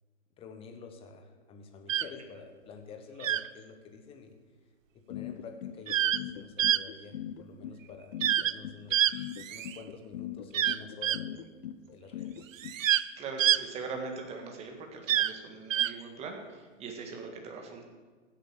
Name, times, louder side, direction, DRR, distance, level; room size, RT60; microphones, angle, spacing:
voice 1, 0.4-4.4 4.9-9.0 9.5-11.5 11.9-12.5, left 5 dB, 15° left, 5 dB, 1.1 m, -48 dB
sound 1, 1.9-2.1 3.2-3.5 5.9-6.2 6.6-6.8 8.2-8.5 8.9-9.8 10.5-11.2 12.5-13.0 13.4-13.6 15.1-15.3 15.7-15.9, right 11 dB, 80° right, 0.6 m, -26 dB
sound 2, 5.1-12.7, left 11 dB, 45° left, 0.7 m, -40 dB
voice 2, 13.1-17.8, right 4 dB, 15° right, 2 dB, 1.8 m, -41 dB
15.0 x 8.4 x 7.3 m, 1.5 s
hypercardioid pair, 150°, 38 cm